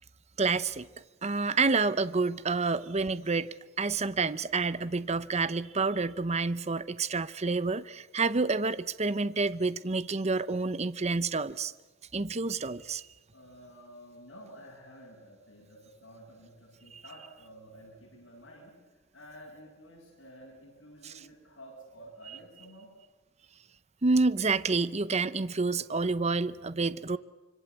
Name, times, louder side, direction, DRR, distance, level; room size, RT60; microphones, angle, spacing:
voice 1, 0.4-0.9 1.2-11.7 12.1-13.1 16.9-17.0 21.0-21.1 24.0-27.2, right 3 dB, 35° right, 0.8 m, -28 dB
voice 2, 13.3-22.9, equal, 85° left, 7.9 m, -51 dB
25.5 x 25.0 x 8.3 m
head